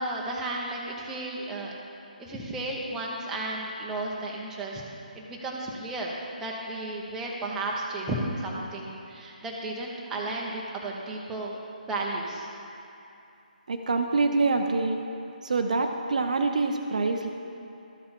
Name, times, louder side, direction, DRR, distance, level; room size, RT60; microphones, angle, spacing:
voice 1, 0.0-1.7 2.2-4.8 5.1-11.6 11.9-12.5, right 2 dB, 10° right, -3 dB, 0.9 m, -33 dB
voice 2, 13.7-15.0 15.4-17.3, right 3 dB, 55° right, 5 dB, 0.5 m, -25 dB
13.0 x 5.6 x 4.3 m, 2.7 s
figure-of-eight pair, 145°, 5 cm